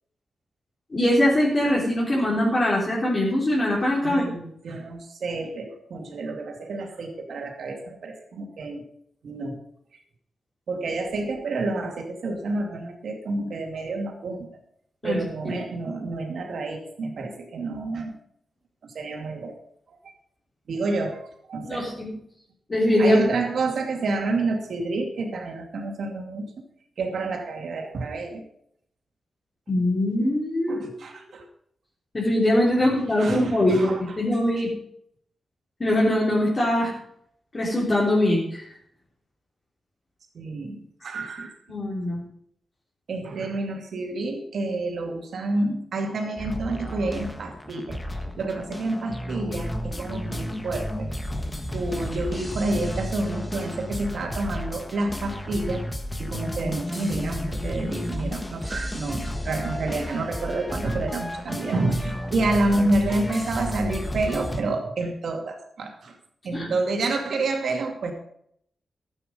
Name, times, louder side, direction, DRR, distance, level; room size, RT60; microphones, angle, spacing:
voice 1, 0.9-4.2 15.0-15.6 21.6-22.1 22.7-23.2 29.7-30.9 32.1-34.7 35.8-36.9 37.5-38.7 41.7-42.2 66.5-66.7, left 1 dB, 40° left, -6 dB, 3.7 m, -22 dB
voice 2, 4.0-8.8 9.2-9.6 10.7-14.5 15.0-18.1 18.8-19.5 19.9-20.0 20.7-22.0 23.0-26.5 27.0-28.4 30.7-31.5 32.8-34.7 40.3-41.5 43.1-51.1 51.7-55.8 56.2-66.2 66.4-68.1, right 2 dB, 80° right, 3 dB, 2.5 m, -29 dB
sound 1, 46.4-64.6, left 1 dB, 20° left, 1.5 m, -32 dB
12.5 x 9.0 x 5.2 m, 0.69 s
cardioid pair, 80°, 0 cm